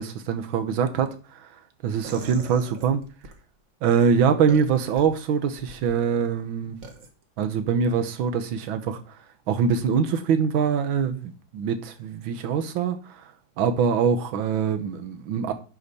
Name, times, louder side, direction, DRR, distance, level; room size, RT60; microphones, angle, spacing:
voice 1, 0.0-3.0 3.8-6.8 7.4-9.2 9.5-13.3 13.6-15.5, right 6 dB, 90° right, 1.7 m, -24 dB
sound 1, 2.0-3.4 4.5-5.0 5.6-6.0 6.8-7.1, right 2 dB, 45° right, 1.6 m, -41 dB
10.5 x 5.4 x 4.2 m
omnidirectional pair, 2.1 m